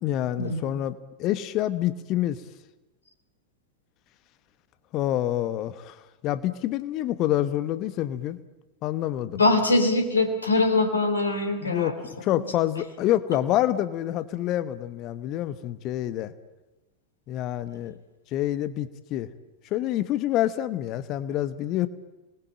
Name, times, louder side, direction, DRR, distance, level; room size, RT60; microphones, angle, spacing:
voice 1, 0.0-2.4 4.9-6.0 6.2-8.4 8.8-9.4 11.6-11.9 12.2-16.3 17.3-18.0 18.3-19.3 19.7-21.9, left 13 dB, 35° left, 14 dB, 1.1 m, -27 dB
voice 2, 9.4-12.0 12.4-12.5, left 2 dB, 75° left, 7 dB, 3.9 m, -22 dB
27.0 x 21.0 x 8.9 m, 1.1 s
figure-of-eight pair, 90°, 0 cm